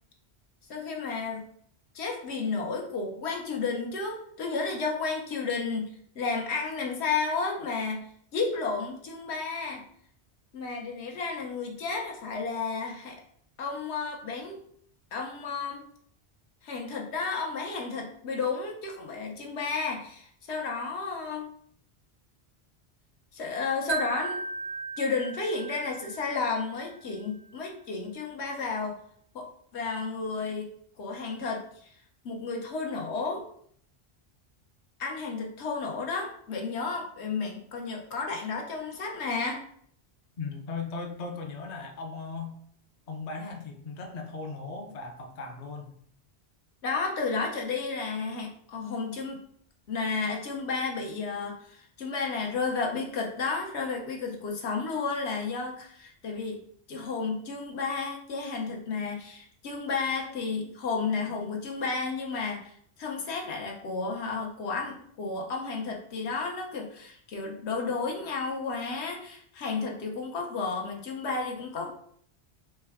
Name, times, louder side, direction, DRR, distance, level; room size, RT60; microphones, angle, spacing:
voice 1, 0.7-1.5 1.9-8.1 8.3-9.8 10.5-13.2 13.6-14.6 15.1-15.9 16.6-21.5 23.3-24.4 25.0-29.0 29.3-29.5 29.7-31.9 32.2-33.4 35.0-39.6 46.8-49.4 49.9-56.6 56.9-71.9, left 4 dB, 80° left, 1 dB, 1.0 m, -32 dB
Wind chime, 23.9-27.0, right 4 dB, 85° right, 0.9 m, -36 dB
voice 2, 40.4-42.6 43.1-45.9, left 4 dB, 50° left, 3 dB, 0.6 m, -37 dB
4.3 x 2.2 x 3.4 m, 0.63 s
omnidirectional pair, 1.1 m